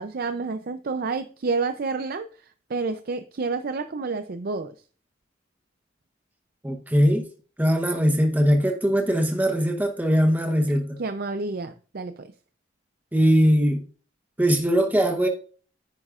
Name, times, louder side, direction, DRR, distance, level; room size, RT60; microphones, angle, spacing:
voice 1, 0.0-2.3 2.7-4.7 11.0-12.3, right 4 dB, 55° right, 0.5 m, -29 dB
voice 2, 6.6-7.3 7.6-11.0 13.1-13.8 14.4-15.3, equal, 10° right, 0.9 m, -21 dB
9.7 x 9.7 x 2.5 m
head